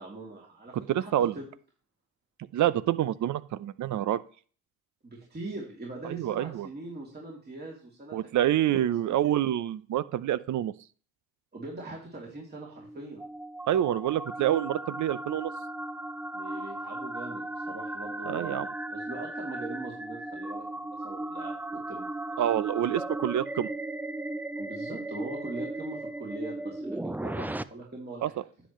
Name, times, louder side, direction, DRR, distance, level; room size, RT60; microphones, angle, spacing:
voice 1, 0.0-1.4 5.0-8.2 8.4-9.4 11.5-13.2 16.3-21.5 21.9-22.1 24.6-28.3, right 2 dB, 30° right, -3 dB, 2.8 m, -42 dB
voice 2, 0.9-1.3 2.5-4.2 6.0-6.7 8.1-10.7 13.7-15.5 18.3-18.7 22.4-23.7 28.2-28.3, right 12 dB, 60° right, 16 dB, 0.6 m, -27 dB
sound 1, 12.6-27.6, right 1 dB, 5° right, 0.4 m, -36 dB
9.9 x 8.0 x 3.1 m, 0.42 s
supercardioid pair, 65°, 34 cm